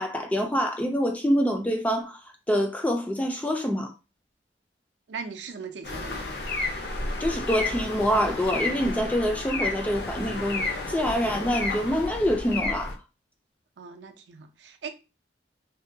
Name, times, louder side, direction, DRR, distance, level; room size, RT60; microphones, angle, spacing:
voice 1, 0.0-3.9 7.2-13.0, equal, 10° left, 0.3 m, -26 dB
voice 2, 5.1-6.3 13.8-14.9, right 5 dB, 70° right, 0.4 m, -39 dB
sound 1, 5.8-12.9, left 2 dB, 60° left, 0.6 m, -31 dB
2.7 x 2.1 x 2.6 m
head